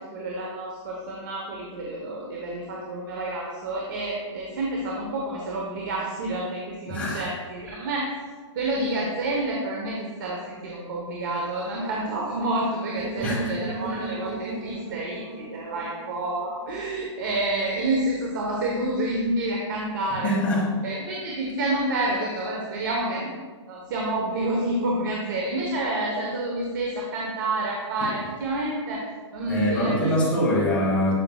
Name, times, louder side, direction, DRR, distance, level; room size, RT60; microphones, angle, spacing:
voice 1, 0.0-8.1 8.5-20.3 20.8-23.4 23.7-29.1 29.3-30.1, right 2 dB, 40° right, -2 dB, 1.1 m, -29 dB
voice 2, 6.9-7.3 13.2-13.5 20.2-20.7 29.5-31.2, left 1 dB, 10° left, -5 dB, 1.5 m, -23 dB
sound 1, 13.0-16.9, right 2 dB, 20° right, 0.8 m, -35 dB
11.0 x 5.7 x 2.3 m, 1.5 s
hypercardioid pair, 165°, 16 cm